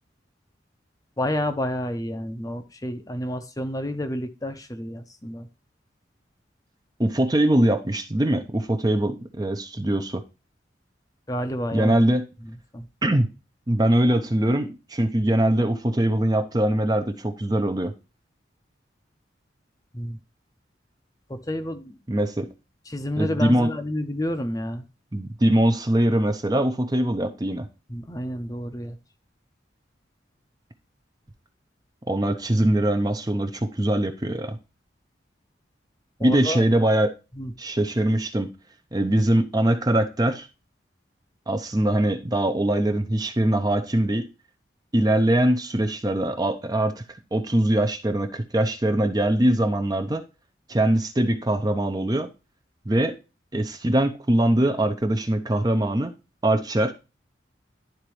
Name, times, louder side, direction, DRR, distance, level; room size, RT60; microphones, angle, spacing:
voice 1, 1.2-5.5 11.3-11.9 12.7-12.9 19.9-20.2 21.3-22.0 22.9-24.9 27.9-29.0 36.2-36.6 37.3-37.5, left 1 dB, 20° left, 0.7 m, -30 dB
voice 2, 7.0-10.2 11.7-12.2 13.0-13.3 13.7-17.9 22.1-22.5 23.2-23.7 25.1-27.7 32.1-34.6 36.2-37.1 37.6-38.5 38.9-40.5 41.5-44.3 44.9-47.0 47.3-50.2 50.7-52.3 52.9-53.2 53.5-56.1 56.4-56.9, right 1 dB, 20° right, 0.7 m, -22 dB
11.5 x 4.0 x 3.1 m
head